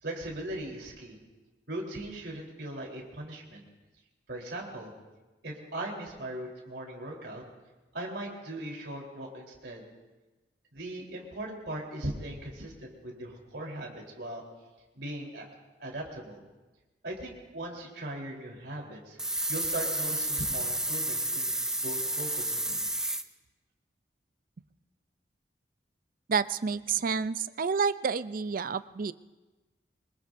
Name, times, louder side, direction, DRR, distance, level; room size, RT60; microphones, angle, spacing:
voice 1, 0.0-1.2 1.7-3.6 4.3-4.9 5.4-7.4 7.9-9.8 10.7-14.4 14.9-15.5 15.8-16.4 17.0-19.2 19.5-22.8, right 1 dB, 70° right, -1 dB, 3.7 m, -39 dB
sound 1, 19.2-23.2, right 1 dB, 5° right, 0.5 m, -31 dB
voice 2, 26.3-29.1, right 5 dB, 50° right, 15 dB, 0.4 m, -29 dB
25.0 x 21.5 x 2.6 m, 1.2 s
head